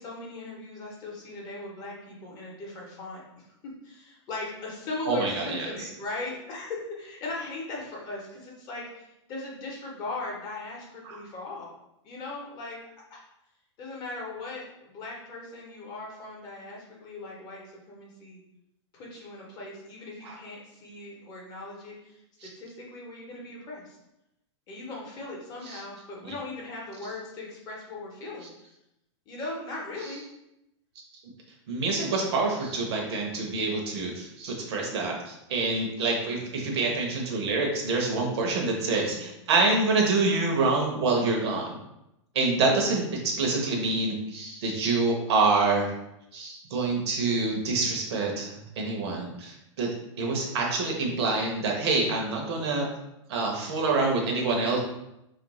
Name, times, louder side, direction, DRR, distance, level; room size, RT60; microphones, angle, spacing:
voice 1, 0.0-3.4 3.8-11.7 12.0-12.8 13.1-13.2 13.8-18.4 18.9-24.0 24.7-28.5 29.3-30.2 36.2-36.6, left 2 dB, 25° left, -3 dB, 0.8 m, -39 dB
voice 2, 5.1-5.6 11.0-11.2 20.2-20.3 25.7-25.8 26.2-26.3 31.7-41.8 42.3-45.9 46.3-49.9 50.2-52.9 53.3-54.8, right 3 dB, 60° right, 0 dB, 0.8 m, -26 dB
3.2 x 2.5 x 3.0 m, 0.86 s
hypercardioid pair, 155°, 16 cm